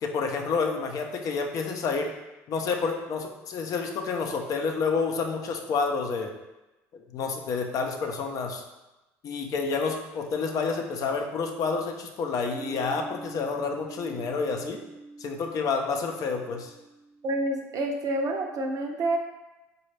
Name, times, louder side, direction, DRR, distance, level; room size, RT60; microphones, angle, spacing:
voice 1, 0.0-2.1 2.5-6.3 6.9-8.6 9.2-14.8 15.2-16.7, left 4 dB, 55° left, 3 dB, 0.5 m, -29 dB
sound 1, 12.4-18.0, right 3 dB, 25° left, 1.0 m, -46 dB
voice 2, 17.2-19.2, right 2 dB, 50° right, 3 dB, 0.6 m, -28 dB
4.1 x 2.3 x 3.2 m, 1.0 s
supercardioid pair, 75°, 7 cm